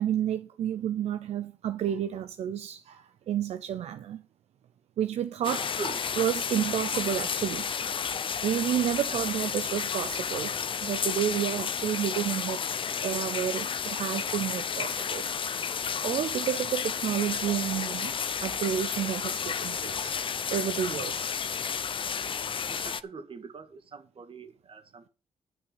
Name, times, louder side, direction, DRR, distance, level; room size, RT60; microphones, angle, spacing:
voice 1, 0.0-4.2 5.0-5.7 6.2-7.6 8.4-10.5 10.8-12.6 13.0-15.2 16.0-18.2 18.4-20.2 20.5-21.3, right 10 dB, 80° right, 0.6 m, -30 dB
sound 1, 5.4-23.0, left 7 dB, 50° left, 0.8 m, -32 dB
voice 2, 9.1-9.5 22.7-25.1, right 4 dB, 55° right, 1.8 m, -42 dB
10.5 x 6.1 x 8.2 m
cardioid pair, 65°, 11 cm